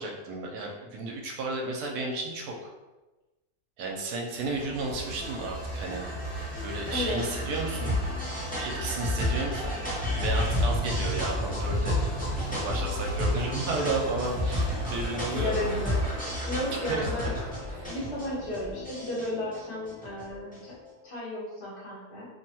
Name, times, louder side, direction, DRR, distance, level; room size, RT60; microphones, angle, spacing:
voice 1, 0.0-2.7 3.8-6.0 6.6-7.9 8.3-9.7 10.2-12.0 12.5-15.7 16.9-17.1 17.7-17.9, right 2 dB, 75° right, 0 dB, 1.1 m, -33 dB
sound 1, 4.3-19.0, right 1 dB, 55° left, 1.3 m, -37 dB
sound 2, 5.2-20.7, left 1 dB, 10° left, 0.5 m, -32 dB
voice 2, 6.9-7.2 13.7-13.9 14.8-15.0 15.3-17.3 17.8-20.7 21.0-22.3, left 1 dB, 40° left, -7 dB, 1.0 m, -34 dB
3.1 x 2.2 x 2.8 m, 1.1 s
omnidirectional pair, 1.7 m